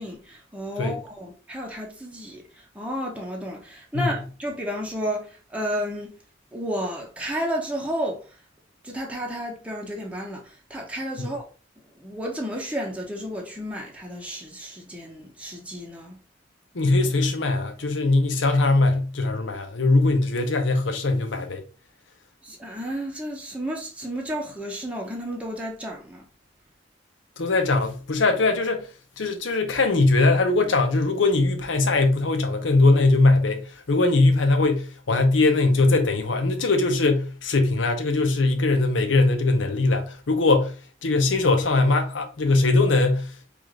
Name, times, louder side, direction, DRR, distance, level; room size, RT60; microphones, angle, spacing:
voice 1, 0.0-2.4 2.7-6.2 6.5-8.2 8.8-11.4 12.0-16.2 22.4-26.3, equal, 5° right, 0.9 m, -32 dB
voice 2, 16.7-21.6 27.4-28.9 29.2-40.7 41.0-43.3, left 2 dB, 75° left, 0.7 m, -21 dB
4.8 x 2.5 x 3.7 m
head